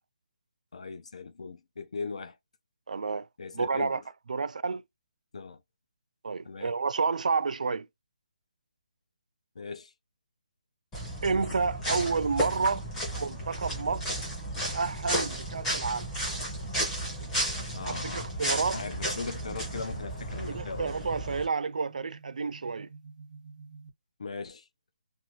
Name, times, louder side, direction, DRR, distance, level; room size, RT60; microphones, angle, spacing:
voice 1, 0.7-2.4 3.4-4.0 5.3-5.6 6.4-6.7 9.6-9.9 17.7-18.3 18.7-20.9 24.2-24.6, left 4 dB, 55° left, 0.5 m, -38 dB
voice 2, 2.9-3.3 3.5-4.0 4.3-4.8 6.2-7.9 11.2-12.8 13.1-14.0 14.7-16.1 17.8-18.8 20.5-22.9, right 4 dB, 70° right, 0.3 m, -30 dB
sound 1, 10.9-21.4, right 1 dB, 5° left, 0.6 m, -33 dB
sound 2, 13.9-23.9, right 4 dB, 90° right, 0.8 m, -48 dB
2.6 x 2.5 x 2.9 m
hypercardioid pair, 180°, 4 cm